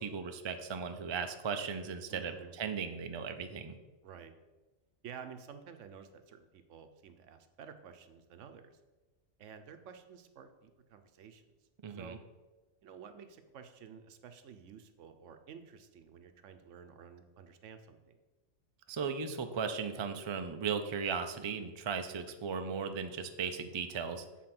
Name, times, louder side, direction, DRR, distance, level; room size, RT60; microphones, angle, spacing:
voice 1, 0.0-3.8 11.8-12.2 18.9-24.2, right 6 dB, 45° right, 7 dB, 0.3 m, -37 dB
voice 2, 2.1-2.5 4.0-4.3 5.0-8.8 9.4-11.4 11.9-12.2 12.8-18.1, right 7 dB, 80° right, 8 dB, 1.0 m, -51 dB
7.6 x 4.1 x 5.9 m, 1.2 s
omnidirectional pair, 1.3 m